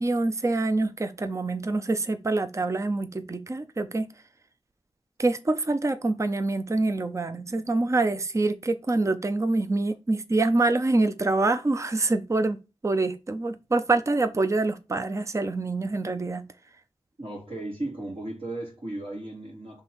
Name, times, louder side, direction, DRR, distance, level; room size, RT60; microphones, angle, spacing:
voice 1, 0.0-4.1 5.2-16.5, right 2 dB, 30° right, 0.5 m, -26 dB
voice 2, 17.2-19.8, right 1 dB, 70° right, 3.3 m, -35 dB
6.9 x 3.5 x 4.3 m
wide cardioid pair, 70°, 10 cm